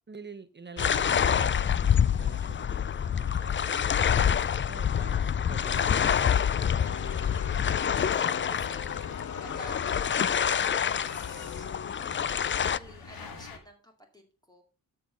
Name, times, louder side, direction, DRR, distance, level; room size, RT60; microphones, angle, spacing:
voice 1, 0.1-6.5, right 4 dB, 30° right, 0.9 m, -47 dB
sound 1, 0.8-12.8, left 8 dB, 35° left, 0.4 m, -27 dB
sound 2, 1.2-13.6, left 4 dB, 90° left, 1.9 m, -49 dB
Crowd, 6.5-12.2, left 8 dB, 55° left, 0.8 m, -42 dB
voice 2, 8.3-11.7 12.3-14.6, right 1 dB, 10° left, 2.4 m, -51 dB
12.5 x 5.6 x 5.2 m
cardioid pair, 70°, 35 cm